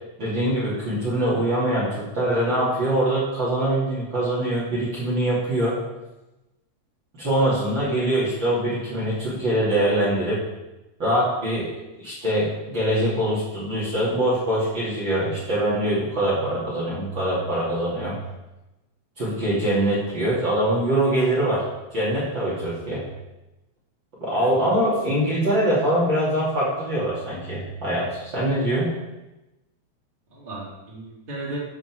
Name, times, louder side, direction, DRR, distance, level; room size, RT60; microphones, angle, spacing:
voice 1, 0.2-5.8 7.2-10.4 11.0-11.7 12.0-18.2 19.2-21.6 21.9-23.0 24.2-29.0, right 1 dB, 40° right, -7 dB, 3.2 m, -23 dB
voice 2, 24.3-24.8 30.3-31.6, right 2 dB, 15° right, -6 dB, 3.1 m, -36 dB
13.5 x 7.7 x 4.7 m, 1.0 s
omnidirectional pair, 3.5 m